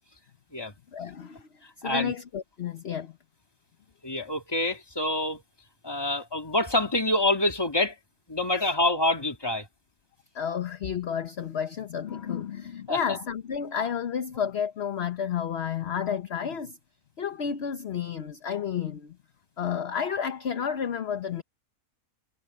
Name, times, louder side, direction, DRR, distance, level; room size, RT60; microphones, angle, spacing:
voice 1, 0.9-1.5 1.8-3.2 8.6-8.7 10.3-16.8 17.2-19.2 19.6-21.4, left 7 dB, 50° left, 1.1 m, -31 dB
voice 2, 1.8-2.2 4.0-5.4 5.8-7.9 8.3-9.7 12.9-13.0, left 1 dB, 15° left, 2.3 m, -26 dB
omnidirectional pair, 1.5 m